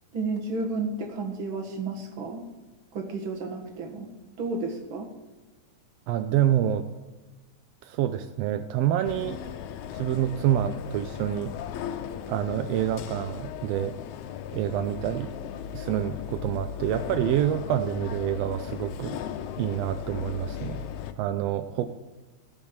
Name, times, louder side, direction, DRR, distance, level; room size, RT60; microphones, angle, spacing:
voice 1, 0.1-2.4 2.9-4.1 4.4-5.1, right 3 dB, 50° right, 3 dB, 2.0 m, -32 dB
voice 2, 6.1-6.9 7.8-9.4 9.9-11.5 12.3-13.9 14.5-15.3 15.7-19.2 19.6-20.9 21.2-21.9, right 11 dB, 80° right, 8 dB, 1.4 m, -27 dB
sound 1, 9.0-21.1, left 9 dB, 80° left, 2.0 m, -37 dB
16.0 x 5.4 x 7.2 m, 1.2 s
omnidirectional pair, 3.4 m